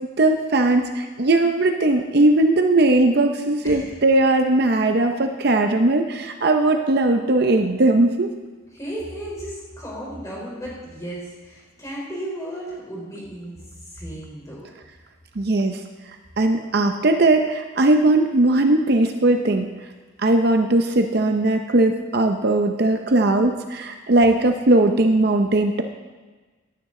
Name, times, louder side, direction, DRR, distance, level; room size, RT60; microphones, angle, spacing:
voice 1, 0.2-8.3 15.4-15.8 16.4-19.7 20.2-25.8, right 2 dB, 50° right, 6 dB, 0.6 m, -19 dB
voice 2, 8.7-14.6, right 1 dB, 15° left, -5 dB, 3.7 m, -34 dB
16.5 x 9.5 x 3.8 m, 1.3 s
head